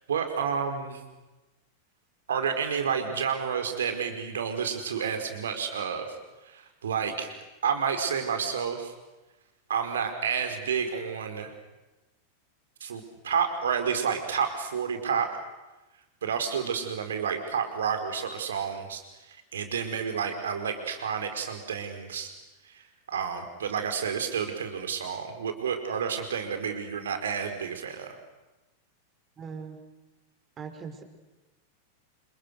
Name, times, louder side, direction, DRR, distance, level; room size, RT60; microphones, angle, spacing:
voice 1, 0.1-1.0 2.3-6.1 6.5-7.3 7.6-8.9 9.7-11.5 12.8-15.4 16.2-19.0 19.3-22.3 22.7-22.8 23.1-28.1, right 7 dB, 65° right, 6 dB, 4.7 m, -30 dB
voice 2, 29.4-29.8 30.6-31.0, right 6 dB, 25° right, 6 dB, 4.6 m, -39 dB
29.0 x 29.0 x 6.6 m, 1.1 s
figure-of-eight pair, 90°, 0 cm